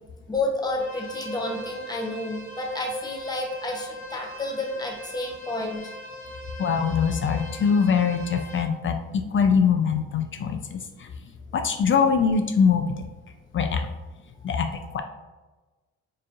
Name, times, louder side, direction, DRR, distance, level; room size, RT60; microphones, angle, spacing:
voice 1, 0.3-5.9, left 2 dB, 15° left, 0 dB, 0.8 m, -30 dB
sound 1, 0.7-8.6, equal, 70° left, 1.0 m, -41 dB
voice 2, 6.6-11.1 11.5-12.9 13.5-13.9 14.4-15.0, left 6 dB, 40° left, 6 dB, 0.4 m, -23 dB
4.5 x 3.1 x 2.4 m, 1.2 s
cardioid pair, 90°, 30 cm